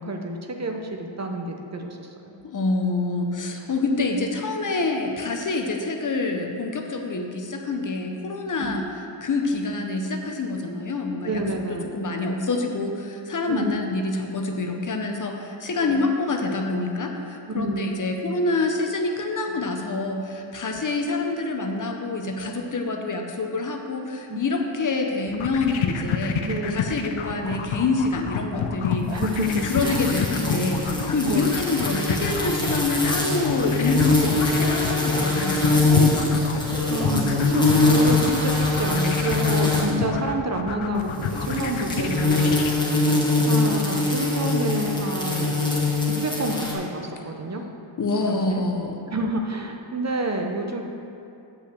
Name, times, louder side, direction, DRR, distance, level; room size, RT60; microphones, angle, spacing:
voice 1, 0.0-2.1 8.6-8.8 11.2-11.9 13.5-13.8 15.8-16.0 17.5-17.9 20.7-20.8 24.3-24.4 26.4-26.8 29.1-30.0 31.2-31.6 36.9-43.0 43.4-45.6 46.1-47.6 48.3-48.6 49.1-50.8, right 1 dB, 35° right, 3 dB, 0.6 m, -29 dB
voice 2, 2.4-8.9 9.2-11.4 11.9-26.4 26.7-29.1 29.4-36.4 48.0-49.0, left 3 dB, 40° left, 3 dB, 0.8 m, -26 dB
sound 1, 25.3-42.7, left 7 dB, 75° left, 0.7 m, -29 dB
sound 2, 29.2-40.0 41.1-46.7, left 3 dB, 10° left, 1.4 m, -23 dB
8.1 x 5.5 x 6.7 m, 2.6 s
wide cardioid pair, 140°, 48 cm